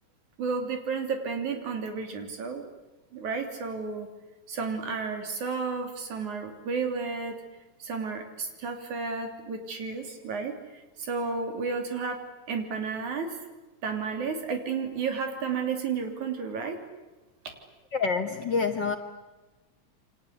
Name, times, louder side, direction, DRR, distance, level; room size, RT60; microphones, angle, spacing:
voice 1, 0.4-2.6 3.1-4.1 4.5-7.4 7.8-12.2 12.5-13.4 13.8-16.8, right 5 dB, 80° right, 5 dB, 4.5 m, -32 dB
voice 2, 17.9-19.0, left 5 dB, 50° left, 6 dB, 1.5 m, -27 dB
28.5 x 25.0 x 8.4 m, 1.1 s
omnidirectional pair, 3.4 m